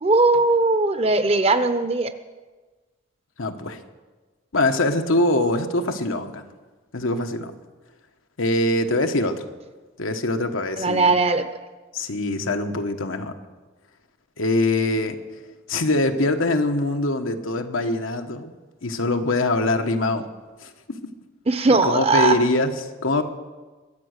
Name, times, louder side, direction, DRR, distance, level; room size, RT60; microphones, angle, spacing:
voice 1, 0.0-2.1 10.8-11.5 21.5-22.4, right 3 dB, 30° right, 10 dB, 0.8 m, -19 dB
voice 2, 3.4-3.8 4.5-6.4 6.9-7.5 8.4-9.4 10.0-11.1 11.9-13.3 14.4-15.2 15.7-18.6 18.8-20.3 20.6-21.0 21.7-23.2, left 2 dB, 90° left, 6 dB, 1.3 m, -23 dB
22.0 x 9.1 x 6.6 m, 1.3 s
head